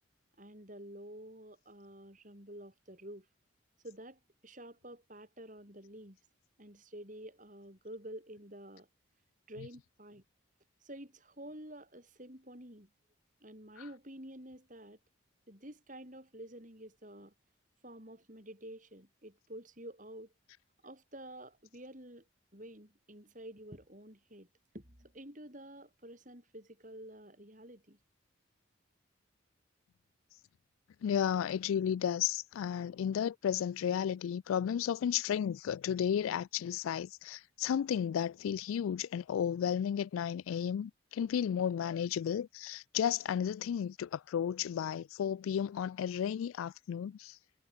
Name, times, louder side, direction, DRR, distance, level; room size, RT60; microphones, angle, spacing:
voice 1, 0.4-3.3 3.8-6.2 6.6-8.9 9.5-10.2 10.8-12.9 13.4-15.0 15.5-17.3 17.8-20.3 20.8-22.3 22.5-24.5 24.7-28.0, right 1 dB, 40° right, 7.3 m, -50 dB
voice 2, 31.0-47.4, left 8 dB, 90° left, 0.3 m, -33 dB
head